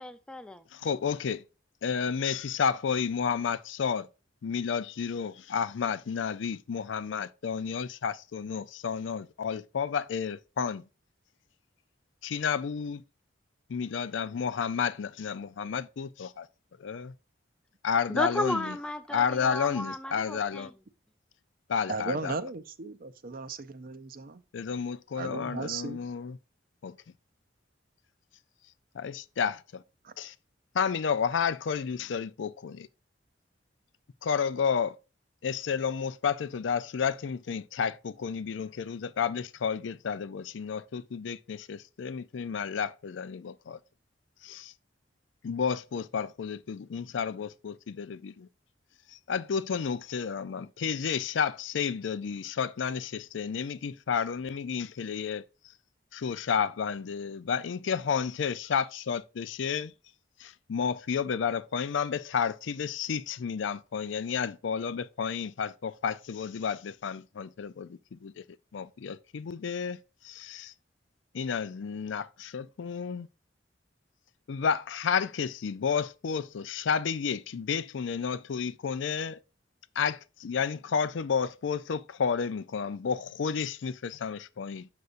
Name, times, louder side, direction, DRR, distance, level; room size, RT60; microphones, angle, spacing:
voice 1, 0.0-0.7 18.1-20.7, left 1 dB, 5° left, 0.5 m, -33 dB
voice 2, 0.7-1.4 1.8-4.1 4.4-10.8 12.2-13.0 13.7-16.5 16.8-17.1 17.8-18.7 19.1-20.7 21.7-22.4 24.5-26.4 26.8-27.0 28.9-29.8 30.2-30.3 30.7-32.9 34.2-35.0 35.4-43.8 44.4-44.7 45.4-48.5 49.1-55.4 56.1-59.9 60.4-68.4 68.7-70.7 71.3-73.3 74.5-79.4 80.0-84.9, left 6 dB, 90° left, 0.4 m, -31 dB
voice 3, 21.9-24.4 25.1-26.0 30.0-30.1, right 3 dB, 50° right, 0.6 m, -36 dB
8.0 x 6.7 x 2.5 m
head